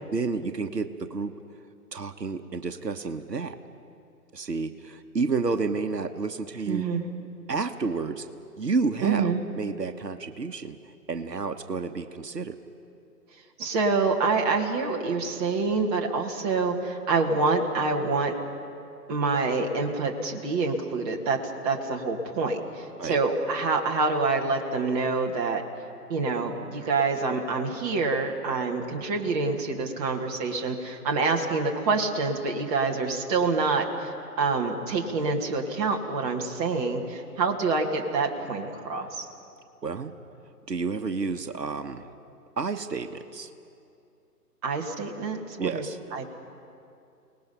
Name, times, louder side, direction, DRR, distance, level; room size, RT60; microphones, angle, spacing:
voice 1, 0.1-1.4 1.9-3.6 4.3-6.9 7.5-8.3 8.6-9.3 9.6-10.8 11.1-12.6 23.0-23.2 39.8-40.1 40.7-42.1 42.6-43.5 45.6-46.0, right 4 dB, 80° right, 8 dB, 1.2 m, -30 dB
voice 2, 6.7-7.0 9.0-9.4 13.6-18.3 19.1-21.4 21.6-25.6 26.1-39.3 44.6-45.8 46.1-46.2, right 4 dB, 25° right, 1 dB, 1.8 m, -26 dB
29.5 x 19.0 x 5.5 m, 2.6 s
figure-of-eight pair, 135°, 49 cm